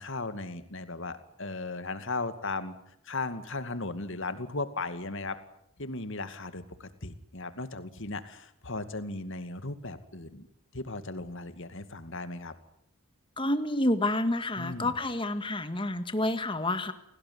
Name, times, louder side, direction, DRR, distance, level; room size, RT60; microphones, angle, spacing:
voice 1, 0.0-2.8 3.0-5.4 5.8-10.5 10.7-12.5 14.6-15.0, left 3 dB, 60° left, 10 dB, 2.3 m, -36 dB
voice 2, 13.4-16.9, left 1 dB, 25° left, 10 dB, 2.0 m, -29 dB
29.5 x 19.0 x 9.7 m, 0.74 s
head